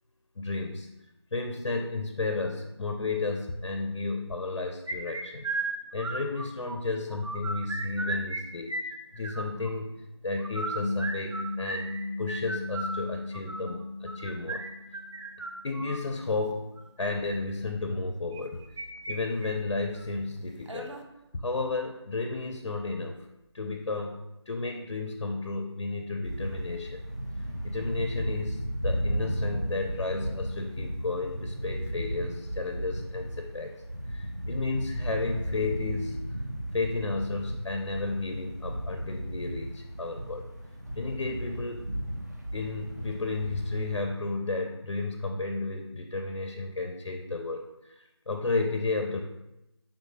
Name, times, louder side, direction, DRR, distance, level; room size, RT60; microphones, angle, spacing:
voice 1, 0.4-0.9 1.3-5.5 5.9-11.9 12.2-14.6 15.6-16.7 17.0-18.6 19.1-20.9 21.3-23.2 23.5-24.2 24.5-27.0 27.6-33.7 34.1-36.2 36.7-40.5 41.0-41.9 42.5-49.2, left 3 dB, 75° left, 4 dB, 0.4 m, -32 dB
sound 1, 4.9-6.8 7.1-8.4 8.7-9.7 10.4-16.0 16.8-17.1 18.3-19.2 19.4-19.5 20.0-20.1 20.7-21.0, right 2 dB, 85° right, 0.5 m, -35 dB
sound 2, 10.8-15.4, left 2 dB, 15° right, 0.9 m, -36 dB
sound 3, 26.2-44.0, equal, 35° right, 0.4 m, -35 dB
3.5 x 2.5 x 2.9 m, 0.92 s
figure-of-eight pair, 180°, 15 cm